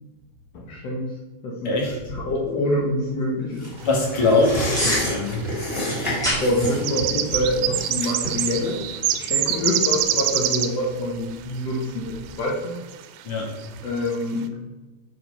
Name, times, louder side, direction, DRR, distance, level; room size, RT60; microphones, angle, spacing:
voice 1, 0.7-1.1 1.4-3.7 6.4-8.8 9.1-12.8 13.8-14.5, left 1 dB, 65° left, -4 dB, 1.6 m, -26 dB
voice 2, 1.6-2.0 3.8-5.4 13.2-13.5, left 2 dB, 45° left, -2 dB, 2.0 m, -22 dB
sound 1, 1.9-12.4, equal, ahead, 1.3 m, -35 dB
sound 2, 3.6-10.6 10.9-11.0, equal, 15° left, 2.6 m, -31 dB
sound 3, 4.4-4.5 4.7-5.4 6.2-10.9 11.8-11.9 12.4-12.5 12.9-13.2 13.6-13.7 14.0-14.2, right 11 dB, 85° right, 2.5 m, -25 dB
7.8 x 4.7 x 5.5 m, 1.2 s
omnidirectional pair, 4.4 m